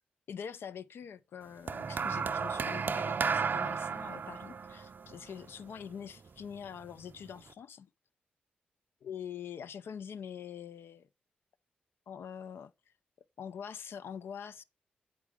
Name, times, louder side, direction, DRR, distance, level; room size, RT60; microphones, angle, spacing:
voice 1, 0.3-7.9 9.0-11.1 12.1-12.7 13.4-14.6, left 8 dB, 70° left, 0.4 m, -44 dB
sound 1, 1.7-6.1 7.0-7.3, right 5 dB, 50° right, 0.4 m, -34 dB
7.4 x 4.7 x 3.4 m
supercardioid pair, 40°, 4 cm